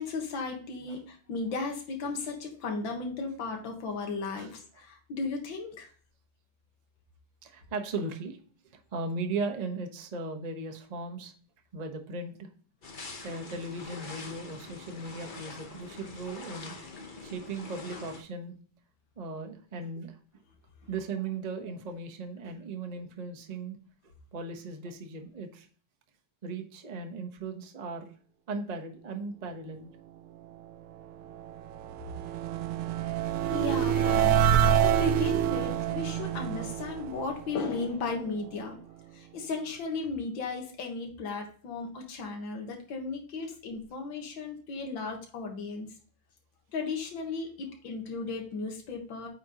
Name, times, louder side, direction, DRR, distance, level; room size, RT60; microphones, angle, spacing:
voice 1, 0.0-5.9 33.5-38.8 39.1-45.9 46.7-49.3, left 4 dB, 65° left, 2 dB, 2.1 m, -35 dB
voice 2, 7.4-8.4 8.9-11.3 11.7-12.5 13.2-16.7 17.2-18.5 19.2-20.1 20.9-23.8 24.3-25.7 26.4-28.1 28.5-29.9, right 3 dB, 55° right, 4 dB, 0.4 m, -37 dB
Espai wellness swimming pool, 12.8-18.2, left 3 dB, 50° left, 0.6 m, -44 dB
sound 1, 31.0-38.2, right 9 dB, 85° right, 1.5 m, -27 dB
8.8 x 5.1 x 2.9 m, 0.43 s
omnidirectional pair, 2.3 m